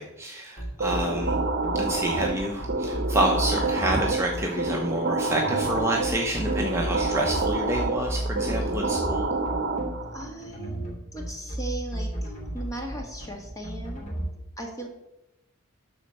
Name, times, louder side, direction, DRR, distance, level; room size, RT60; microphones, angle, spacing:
voice 1, 0.0-1.4 1.7-9.3, right 1 dB, 10° right, 0 dB, 0.8 m, -28 dB
sound 1, 0.6-14.3, right 1 dB, 35° left, 2.8 m, -33 dB
sound 2, 0.8-10.3, right 2 dB, 45° right, 1.0 m, -28 dB
voice 2, 10.1-14.0 14.6-14.9, right 1 dB, 15° left, 1 dB, 1.8 m, -38 dB
12.5 x 4.3 x 6.5 m, 0.90 s
head